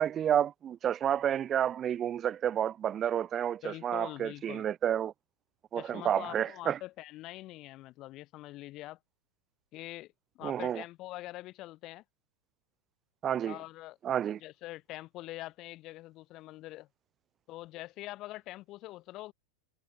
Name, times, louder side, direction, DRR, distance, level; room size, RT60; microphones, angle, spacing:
voice 1, 0.0-5.1 5.7-6.8 10.4-10.8 13.2-13.6 14.0-14.4, right 9 dB, 25° right, 0.9 m, -30 dB
voice 2, 3.6-4.7 5.7-9.0 9.7-12.0 13.4-14.0 14.4-16.9 17.5-19.3, left 17 dB, 35° left, 4.1 m, -44 dB
figure-of-eight pair, 90°, 0 cm